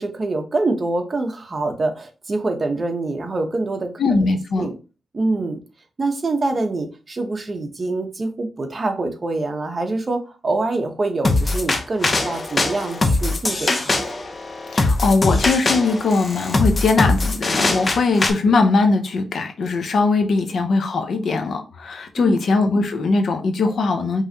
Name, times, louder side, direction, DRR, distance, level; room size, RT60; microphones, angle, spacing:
voice 1, 0.0-4.2 4.6-4.7 5.1-5.6 6.0-13.9 22.2-22.3, right 2 dB, 35° right, 4 dB, 1.0 m, -25 dB
voice 2, 4.0-4.7 14.7-24.2, left 3 dB, 70° left, 5 dB, 0.9 m, -20 dB
sound 1, 11.2-18.3, left 2 dB, 35° left, 0.8 m, -21 dB
5.5 x 3.3 x 2.9 m, 0.33 s
wide cardioid pair, 105°, 0 cm